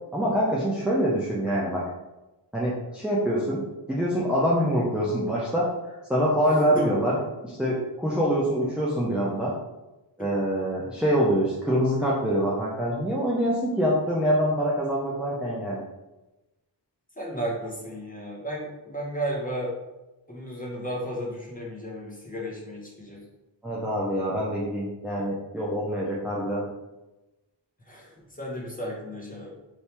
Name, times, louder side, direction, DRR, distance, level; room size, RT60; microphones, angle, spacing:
voice 1, 0.1-1.8 2.5-3.6 3.9-5.7 6.1-7.2 7.4-9.5 10.2-15.8 23.6-26.6, equal, ahead, -6 dB, 0.6 m, -25 dB
voice 2, 6.5-6.9 10.2-10.3 17.2-19.8 20.3-23.3 27.9-29.5, right 1 dB, 20° left, -4 dB, 1.1 m, -34 dB
3.4 x 2.7 x 4.3 m, 1.0 s
wide cardioid pair, 100°, 43 cm